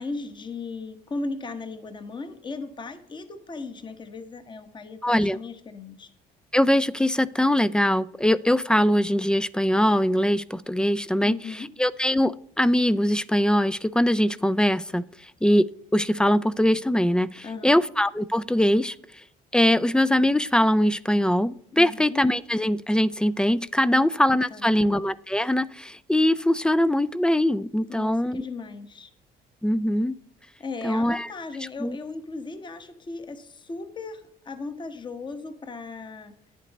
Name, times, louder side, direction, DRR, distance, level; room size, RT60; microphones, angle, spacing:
voice 1, 0.0-6.1 11.2-11.7 17.4-17.8 21.7-22.2 23.9-24.1 24.5-25.0 27.9-29.1 30.6-36.3, left 3 dB, 25° left, 10 dB, 1.1 m, -37 dB
voice 2, 5.0-5.4 6.5-15.0 15.4-19.0 19.5-28.4 29.6-30.1 30.8-31.3 31.8-32.0, left 1 dB, 5° left, 18 dB, 0.3 m, -22 dB
10.5 x 8.5 x 4.1 m, 0.70 s
cardioid pair, 110°, 17 cm